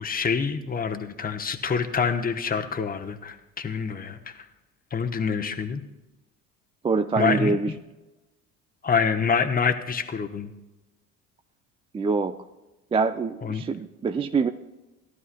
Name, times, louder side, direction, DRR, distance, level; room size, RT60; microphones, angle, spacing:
voice 1, 0.0-4.3 4.9-5.8 7.2-7.6 8.8-10.5 13.4-13.6, left 6 dB, 20° left, 6 dB, 1.0 m, -26 dB
voice 2, 6.8-7.7 11.9-12.4 12.9-14.5, right 4 dB, 15° right, 8 dB, 0.4 m, -24 dB
17.5 x 12.5 x 2.3 m, 1.1 s
hypercardioid pair, 60°, 43 cm